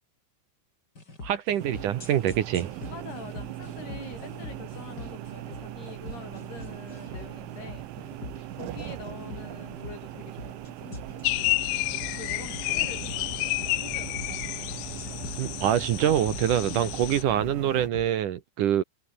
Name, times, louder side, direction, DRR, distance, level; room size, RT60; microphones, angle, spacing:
sound 1, 1.0-18.1, left 2 dB, 20° left, 6.0 m, -44 dB
voice 1, 1.2-2.7 15.4-18.8, right 10 dB, 65° right, 2.1 m, -25 dB
sound 2, 1.6-17.9, right 14 dB, 80° right, 3.9 m, -40 dB
voice 2, 2.9-7.9 8.5-14.2 16.6-16.9, left 5 dB, 55° left, 7.9 m, -45 dB
sound 3, 11.2-17.2, left 23 dB, 85° left, 2.4 m, -30 dB
omnidirectional pair, 5.4 m